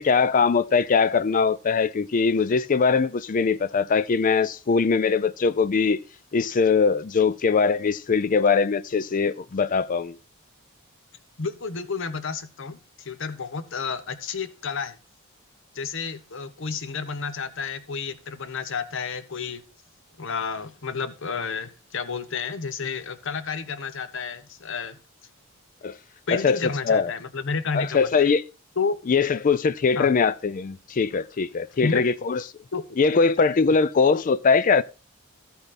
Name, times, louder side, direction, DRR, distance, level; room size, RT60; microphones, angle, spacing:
voice 1, 0.0-6.0 6.3-10.2 25.8-26.0 26.3-27.1 27.7-28.4 29.1-32.4 33.0-34.8, left 5 dB, 40° left, 0.4 m, -21 dB
voice 2, 11.4-15.0 15.7-19.6 20.2-25.0 26.3-28.3 28.8-29.0 30.0-30.1 31.8-32.0 32.7-32.8 33.7-33.8, left 5 dB, 60° left, 0.9 m, -31 dB
13.5 x 5.6 x 4.1 m
head